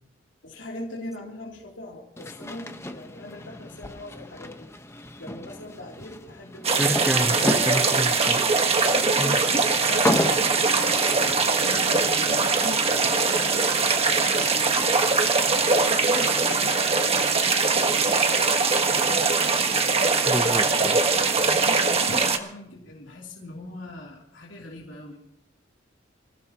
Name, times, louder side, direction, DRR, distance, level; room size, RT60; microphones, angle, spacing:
voice 1, 0.4-4.7 5.2-7.8 8.7-14.9 15.6-19.8 21.4-25.2, left 2 dB, 75° left, -3 dB, 3.1 m, -40 dB
sound 1, 2.2-15.1, left 1 dB, 15° left, 1.1 m, -34 dB
sound 2, 6.6-22.4, right 4 dB, 30° right, 1.4 m, -22 dB
voice 2, 6.8-8.5 9.2-9.3 20.3-21.0, equal, 5° right, 10 dB, 0.8 m, -28 dB
27.5 x 16.5 x 3.0 m, 0.79 s
head